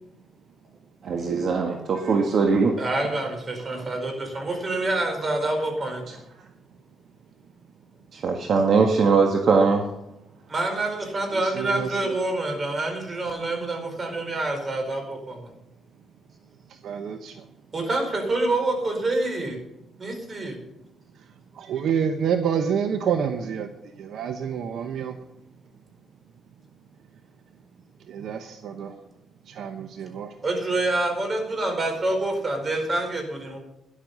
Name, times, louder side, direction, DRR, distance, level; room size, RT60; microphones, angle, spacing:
voice 1, 1.0-2.8 3.7-3.8 6.1-6.2 8.1-9.9, right 4 dB, 55° right, 3 dB, 1.5 m, -21 dB
voice 2, 2.8-6.0 10.5-15.5 17.7-19.6 20.0-20.6 30.4-33.6, right 2 dB, 35° right, 4 dB, 4.8 m, -27 dB
voice 3, 11.3-12.1 16.8-17.3 21.6-23.7 24.0-25.1 28.1-28.9 29.5-30.3, right 7 dB, 70° right, 7 dB, 1.0 m, -28 dB
12.5 x 11.0 x 5.4 m, 0.89 s
cardioid pair, 90°, 0 cm